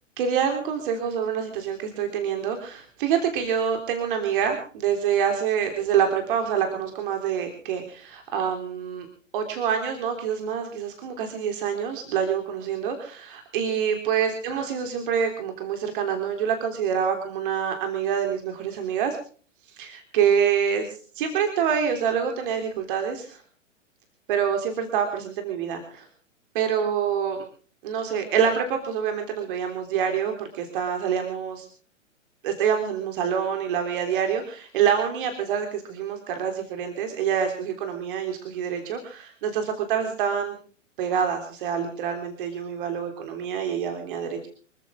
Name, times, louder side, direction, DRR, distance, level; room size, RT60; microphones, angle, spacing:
voice 1, 0.2-9.1 9.3-19.2 19.7-23.4 24.3-26.1 26.5-27.4 27.8-31.7 32.4-40.5 41.0-44.5, right 8 dB, 40° right, 5 dB, 3.6 m, -26 dB
26.0 x 14.5 x 3.7 m, 0.42 s
figure-of-eight pair, 110°, 38 cm